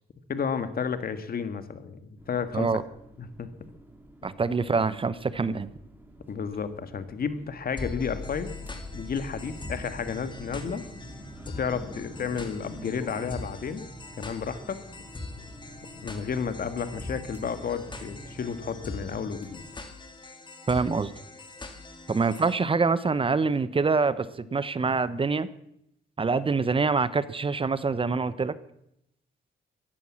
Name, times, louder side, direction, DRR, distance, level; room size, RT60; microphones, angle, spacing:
voice 1, 0.3-2.7 3.2-3.5 6.3-8.5 8.9-10.8 11.5-13.8 14.2-14.8 16.0-19.6, left 6 dB, 50° left, 11 dB, 1.8 m, -32 dB
sound 1, 2.2-19.7, right 1 dB, 10° right, 2.9 m, -47 dB
voice 2, 4.2-5.7 20.7-21.1 22.1-25.5 26.2-28.5, right 4 dB, 25° right, 16 dB, 0.9 m, -25 dB
sound 2, 7.8-22.5, left 2 dB, 25° left, 2.4 m, -42 dB
15.5 x 11.0 x 7.2 m, 0.80 s
cardioid pair, 90°, 20 cm